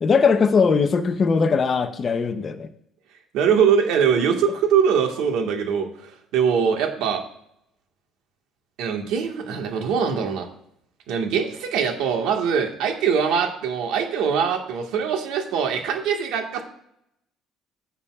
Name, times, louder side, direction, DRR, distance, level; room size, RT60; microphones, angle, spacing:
voice 1, 0.0-2.7, left 5 dB, 25° left, 8 dB, 0.7 m, -20 dB
voice 2, 3.3-7.2 8.8-10.5 11.1-16.6, right 7 dB, 80° right, 3 dB, 1.6 m, -22 dB
15.0 x 6.9 x 2.4 m, 0.76 s
cardioid pair, 170°, 0 cm